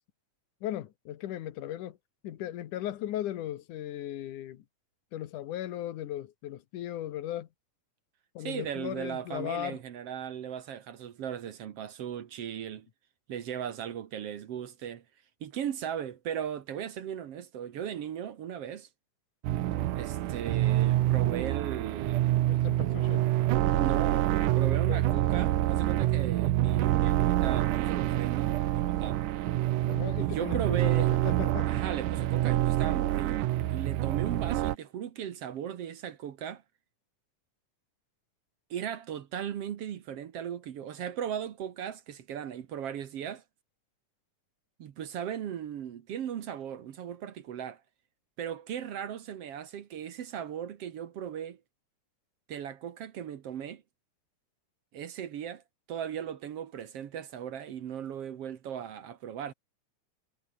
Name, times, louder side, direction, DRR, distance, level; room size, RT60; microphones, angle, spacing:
voice 1, 0.6-2.0 2.2-4.6 5.1-7.5 8.4-9.8 22.5-23.3 24.9-25.0 29.9-31.7, left 12 dB, 80° left, 2.8 m, -37 dB
voice 2, 8.4-12.9 13.3-15.0 15.4-18.9 20.0-22.5 23.7-29.2 30.2-31.2 31.7-36.6 38.7-43.4 44.8-47.8 48.4-51.6 52.5-53.8 54.9-55.6 55.9-59.5, right 9 dB, 60° right, 2.0 m, -37 dB
sound 1, 19.4-34.8, right 14 dB, 90° right, 2.6 m, -27 dB
omnidirectional pair, 3.5 m